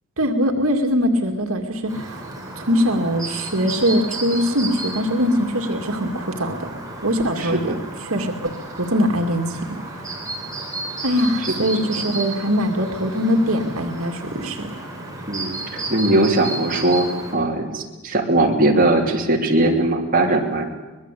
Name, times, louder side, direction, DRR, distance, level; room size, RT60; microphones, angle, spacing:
voice 1, 0.2-2.3 2.6-6.7 7.0-7.7 8.0-8.5 8.8-10.0 11.0-14.7, equal, 80° right, 3 dB, 2.2 m, -22 dB
Chirp tweet, 1.9-17.3, right 2 dB, 15° right, 5.0 m, -33 dB
voice 2, 7.4-7.8 11.6-11.7 15.3-20.7, right 2 dB, 40° right, 0 dB, 3.2 m, -20 dB
24.5 x 21.0 x 8.4 m, 1.2 s
head